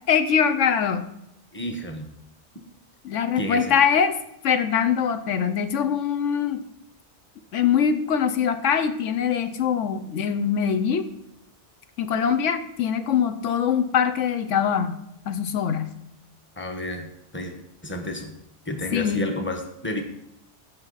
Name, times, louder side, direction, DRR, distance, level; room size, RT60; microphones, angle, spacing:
voice 1, 0.1-1.0 3.0-4.2 4.4-6.6 7.5-11.1 12.0-15.0 15.3-15.9 18.9-19.3, left 7 dB, 90° left, 10 dB, 1.1 m, -23 dB
voice 2, 1.5-2.1 3.4-3.7 16.6-17.1 17.3-17.5 17.8-18.3 18.7-20.0, left 1 dB, 10° left, 4 dB, 1.0 m, -30 dB
14.5 x 5.7 x 4.0 m, 0.79 s
omnidirectional pair, 1.2 m